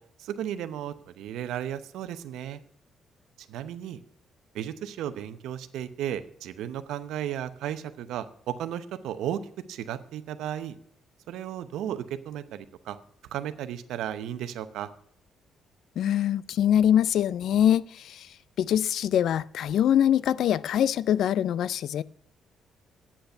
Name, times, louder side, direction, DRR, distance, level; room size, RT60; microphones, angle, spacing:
voice 1, 0.2-2.6 3.4-4.0 4.5-9.4 9.7-10.8 11.3-13.0 13.3-14.9, right 10 dB, 85° right, 12 dB, 0.7 m, -34 dB
voice 2, 16.0-18.3 18.6-22.0, left 10 dB, 75° left, 20 dB, 0.3 m, -23 dB
8.6 x 8.0 x 6.6 m, 0.65 s
cardioid pair, 90°, 0 cm